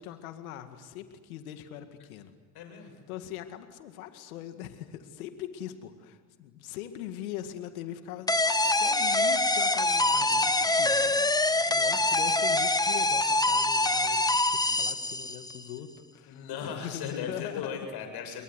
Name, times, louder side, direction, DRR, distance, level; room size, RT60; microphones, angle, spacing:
voice 1, 0.0-2.3 3.1-17.8, left 11 dB, 85° left, 8 dB, 2.1 m, -41 dB
voice 2, 2.5-3.0 10.2-11.9 14.6-14.8 16.3-18.4, left 6 dB, 65° left, 5 dB, 7.6 m, -39 dB
sound 1, 8.3-15.6, left 2 dB, 10° left, 1.3 m, -25 dB
29.5 x 23.0 x 8.1 m, 1.4 s
hypercardioid pair, 65°, 42 cm